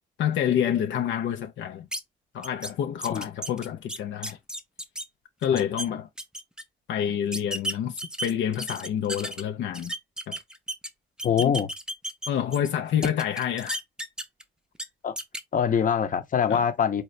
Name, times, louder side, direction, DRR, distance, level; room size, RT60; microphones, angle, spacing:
voice 1, 0.2-1.9 2.3-4.4 5.4-6.1 6.9-9.9 10.3-10.4 11.4-11.5 12.3-13.8 16.5-16.6, left 9 dB, 70° left, 0.6 m, -28 dB
sound 1, 1.9-2.0 2.4-2.7 3.0-5.0 5.4-5.9 6.2-6.6 7.3-9.4 9.7-10.9 11.2-12.7 13.0-14.4 14.7-14.8 15.2-15.4, right 1 dB, 5° right, 0.6 m, -33 dB
voice 2, 11.2-11.7 15.0-15.1 15.5-17.0, left 8 dB, 40° left, 0.8 m, -24 dB
3.8 x 2.7 x 3.2 m
cardioid pair, 90°, 20 cm